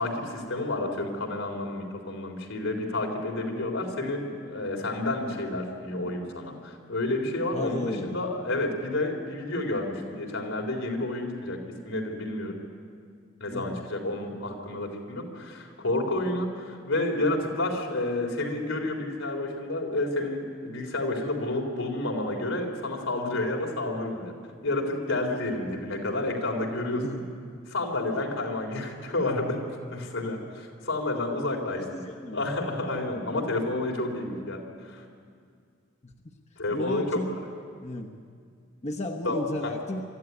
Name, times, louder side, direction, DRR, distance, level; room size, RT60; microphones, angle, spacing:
voice 1, 0.0-12.6 13.4-24.3 24.6-27.0 27.7-29.6 29.9-34.6 34.9-35.0 36.6-37.1 39.2-39.7, left 2 dB, 90° left, 1 dB, 3.7 m, -30 dB
voice 2, 7.5-8.2 13.5-13.8 27.0-27.2 31.7-32.4 36.0-36.1 36.7-37.3 37.8-38.1 38.8-40.0, left 1 dB, 35° left, 1 dB, 1.1 m, -33 dB
24.0 x 14.0 x 9.6 m, 2.2 s
head